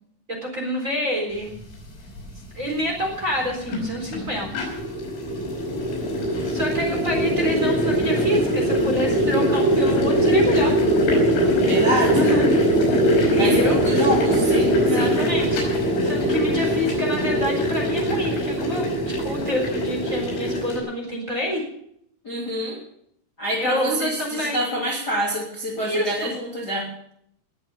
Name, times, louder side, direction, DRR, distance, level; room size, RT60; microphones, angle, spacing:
voice 1, 0.3-1.5 2.5-4.7 6.5-10.8 11.8-12.5 13.2-13.8 14.9-15.6 16.0-18.9 19.2-21.6 23.6-24.6 25.8-26.3, equal, 20° right, 0 dB, 3.7 m, -27 dB
Waterboiler Starts to Boil, 2.2-2.3 3.3-20.8, equal, 85° left, 7.7 m, -21 dB
voice 2, 11.6-12.4 13.4-15.1 22.2-22.8 23.4-26.9, equal, 25° left, -4 dB, 2.8 m, -26 dB
19.5 x 8.4 x 7.0 m, 0.71 s
omnidirectional pair, 5.4 m